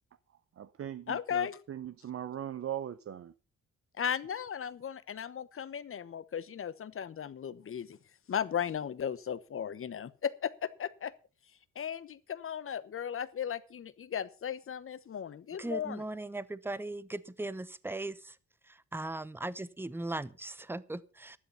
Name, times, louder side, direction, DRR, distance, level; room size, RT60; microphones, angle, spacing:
voice 1, 0.6-3.3, right 10 dB, 50° right, 0.8 m, -40 dB
voice 2, 1.1-1.6 4.0-8.0 8.3-11.1 11.7-16.0, left 8 dB, 45° left, 1.1 m, -36 dB
voice 3, 15.6-18.4 18.6-21.4, right 2 dB, 5° right, 0.9 m, -38 dB
12.5 x 11.5 x 5.6 m
cardioid pair, 90°, 30 cm